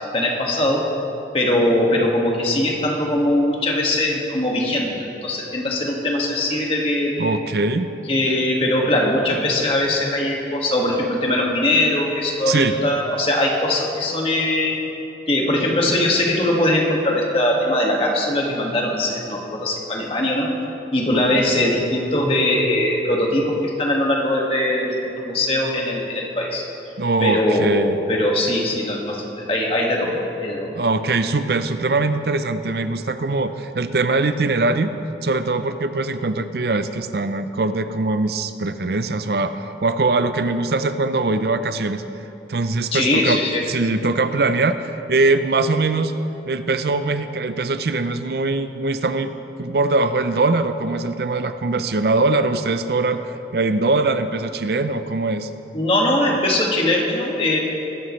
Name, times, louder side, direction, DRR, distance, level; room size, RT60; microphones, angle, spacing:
voice 1, 0.1-0.8 1.3-4.9 5.2-7.4 8.1-14.8 15.3-20.5 20.9-26.7 27.2-30.7 42.9-43.6 55.7-57.6, left 1 dB, 30° left, -1 dB, 1.8 m, -21 dB
voice 2, 7.2-7.9 12.5-12.7 27.0-28.0 30.7-34.9 35.2-42.0 42.5-46.2 46.5-49.3 49.6-55.5 56.2-56.3, right 3 dB, 65° right, 10 dB, 0.5 m, -22 dB
21.0 x 12.5 x 3.2 m, 2.9 s
head